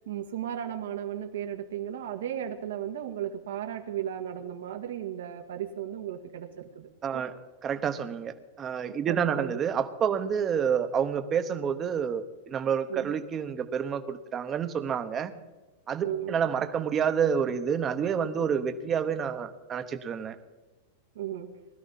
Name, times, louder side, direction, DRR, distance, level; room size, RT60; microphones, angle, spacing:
voice 1, 0.1-7.2 9.1-9.6 10.1-10.3 12.9-13.1 16.0-16.4 21.2-21.6, right 10 dB, 85° right, 5 dB, 1.8 m, -35 dB
voice 2, 7.0-7.3 7.6-15.3 15.9-20.4, right 7 dB, 20° right, 9 dB, 0.9 m, -29 dB
20.0 x 13.0 x 4.1 m, 1.1 s
supercardioid pair, 165°, 0 cm